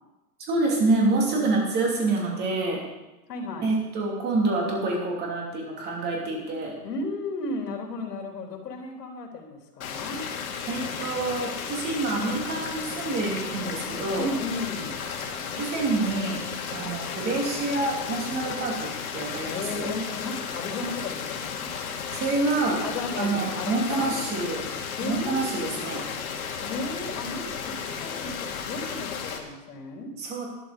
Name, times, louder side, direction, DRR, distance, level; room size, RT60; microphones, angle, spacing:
voice 1, 0.5-2.8 3.6-6.8 10.7-14.3 15.6-16.4 16.7-19.9 22.1-22.8 23.2-24.6 25.0-26.0 30.2-30.5, right 3 dB, 20° right, -1 dB, 2.7 m, -27 dB
voice 2, 3.3-3.8 6.8-10.2 14.2-15.1 19.5-21.7 22.8-24.2 25.0-25.9 26.6-30.1, left 2 dB, 75° left, 1 dB, 3.8 m, -34 dB
sound 1, 9.8-29.4, left 6 dB, 60° left, 2.2 m, -34 dB
12.0 x 11.0 x 5.1 m, 1.1 s
hypercardioid pair, 155°, 48 cm